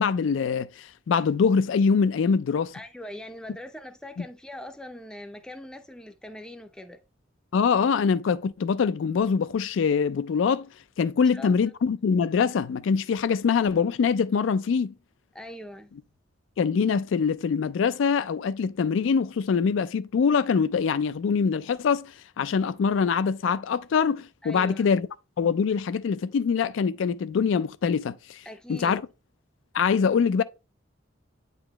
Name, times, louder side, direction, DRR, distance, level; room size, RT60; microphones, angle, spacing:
voice 1, 0.0-2.7 7.5-10.7 11.0-14.9 16.6-25.1 25.4-28.4 28.7-29.0 29.7-30.4, left 6 dB, 80° left, 0.4 m, -24 dB
voice 2, 2.7-7.0 11.2-11.5 15.3-15.9 24.4-24.8 28.5-29.0, left 1 dB, 5° left, 0.5 m, -41 dB
8.8 x 4.0 x 3.0 m
head